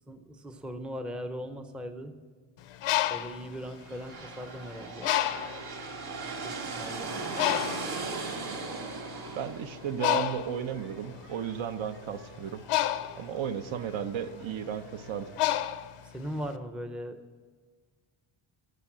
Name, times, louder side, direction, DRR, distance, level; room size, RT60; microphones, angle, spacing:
voice 1, 0.1-2.1 3.1-5.1 6.0-7.1 16.0-17.2, equal, ahead, 7 dB, 0.5 m, -39 dB
Bird, 2.6-4.5 5.0-5.7 6.4-6.5 6.8-16.5, left 13 dB, 85° left, 0.8 m, -31 dB
sound 1, 3.7-11.4, right 4 dB, 50° right, 2.3 m, -38 dB
voice 2, 9.3-12.6 13.2-15.3, right 8 dB, 65° right, 10 dB, 0.8 m, -34 dB
sound 2, 9.8-15.4, right 2 dB, 90° right, 2.7 m, -55 dB
13.5 x 6.7 x 8.5 m, 1.5 s
wide cardioid pair, 165°, 50 cm